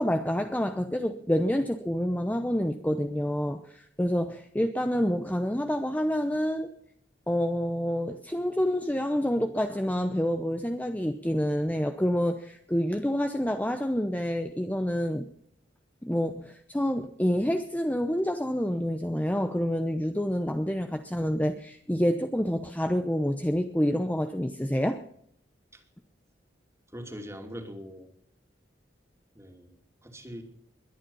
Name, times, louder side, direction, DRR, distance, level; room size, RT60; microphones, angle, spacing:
voice 1, 0.0-6.7 7.3-15.3 16.0-25.0, equal, 10° left, 7 dB, 0.8 m, -28 dB
voice 2, 26.9-28.1 29.3-30.4, equal, 15° right, 4 dB, 2.7 m, -42 dB
21.5 x 9.8 x 5.5 m, 0.68 s
head